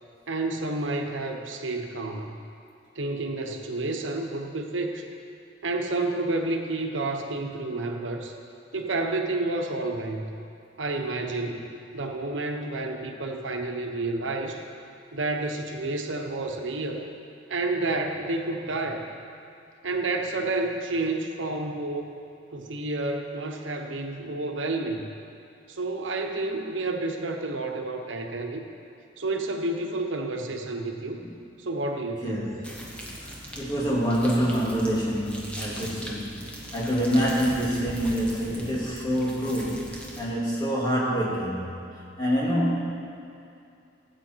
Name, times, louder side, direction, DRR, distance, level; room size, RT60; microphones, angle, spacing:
voice 1, 0.3-2.4 2.9-5.1 5.6-8.3 8.7-10.3 10.8-14.6 15.1-17.1 17.5-19.1 19.8-22.2 22.5-25.1 25.7-28.6 29.2-31.2 31.6-32.4, right 2 dB, 90° right, 3 dB, 1.1 m, -30 dB
voice 2, 32.2-32.8 33.2-41.6 42.2-43.0, equal, 20° left, -6 dB, 2.8 m, -26 dB
sound 1, 32.6-40.3, equal, 5° left, 1.5 m, -40 dB
17.0 x 8.8 x 4.7 m, 2.6 s
head